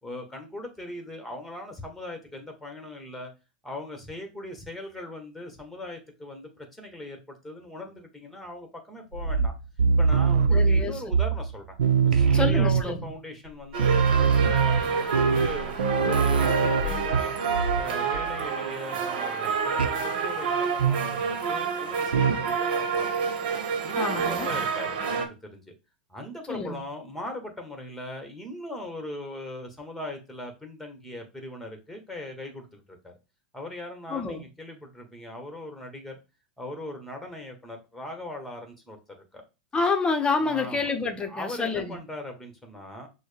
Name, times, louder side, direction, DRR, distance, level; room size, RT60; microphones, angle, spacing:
voice 1, 0.0-3.3 3.6-9.5 10.0-11.7 12.0-14.0 14.4-17.3 17.7-23.2 23.8-25.7 26.1-33.2 33.5-36.2 36.6-39.0 39.3-39.4 40.4-40.9 41.3-43.1, left 1 dB, ahead, 1.3 m, -39 dB
sound 1, 9.1-11.5 11.8-13.1 13.5-13.6 13.7-17.9 18.1-18.4 19.8-20.0 20.8-21.2 22.1-22.5, right 5 dB, 85° right, 0.7 m, -23 dB
voice 2, 10.5-11.0 12.3-13.1 23.9-24.5 26.5-26.8 34.1-34.4 39.7-42.0, left 4 dB, 20° left, 0.8 m, -28 dB
sound 2, 13.7-25.3, right 6 dB, 65° right, 1.1 m, -28 dB
6.1 x 2.2 x 3.3 m
hypercardioid pair, 110°, 5 cm